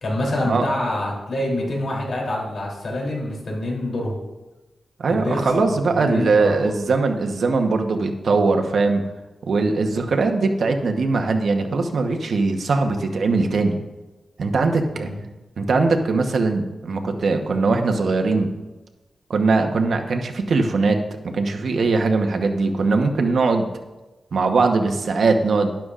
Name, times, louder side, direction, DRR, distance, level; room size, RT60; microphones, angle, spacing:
voice 1, 0.0-4.2 5.1-6.8 14.9-15.2, left 1 dB, 65° left, -2 dB, 3.2 m, -26 dB
voice 2, 5.0-9.0 9.5-13.8 14.4-15.1 15.6-18.5 19.3-21.0 21.2-23.7 24.3-25.7, right 3 dB, 65° right, 4 dB, 1.1 m, -20 dB
12.0 x 11.5 x 2.5 m, 1.1 s
wide cardioid pair, 105°, 0 cm